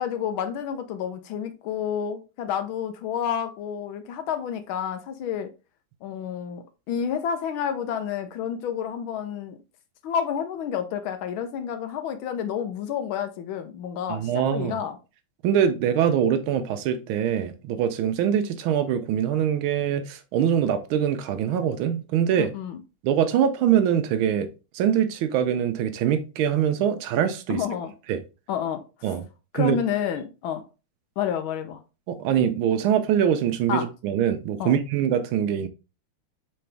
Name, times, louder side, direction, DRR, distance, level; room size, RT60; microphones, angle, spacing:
voice 1, 0.0-5.5 6.0-9.6 10.0-15.0 22.4-22.8 27.5-27.9 28.5-28.8 29.5-30.6 31.2-31.8 33.7-33.9 34.6-34.7, left 8 dB, 75° left, 1.3 m, -29 dB
voice 2, 14.1-14.8 15.4-22.5 23.0-24.5 24.7-27.6 28.1-28.2 29.0-29.2 29.5-29.8 32.1-35.7, right 9 dB, 75° right, 1.3 m, -23 dB
4.2 x 3.8 x 3.3 m
omnidirectional pair, 2.4 m